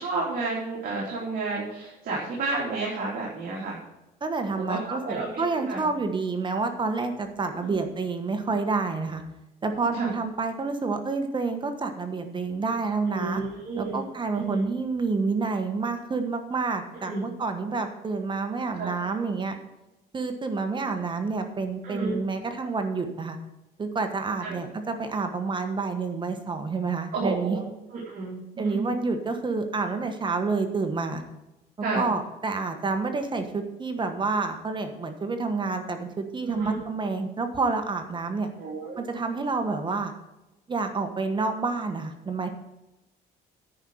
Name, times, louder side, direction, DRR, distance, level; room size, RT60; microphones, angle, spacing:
voice 1, 0.0-3.8 4.5-5.4 5.7-5.8 7.6-7.8 9.9-10.1 13.1-14.1 14.3-14.7 17.0-17.2 18.7-18.9 21.8-22.2 24.4-24.6 27.1-28.9 31.8-32.1 36.5-36.8 38.6-39.0, right 3 dB, 55° right, -5 dB, 3.1 m, -31 dB
voice 2, 4.2-9.2 9.6-13.4 13.8-19.6 20.1-23.4 23.8-27.6 28.6-31.2 31.9-38.5 39.0-40.1 40.7-42.5, right 4 dB, 30° right, 6 dB, 1.3 m, -28 dB
10.0 x 5.4 x 7.8 m, 0.97 s
cardioid pair, 110°, 17 cm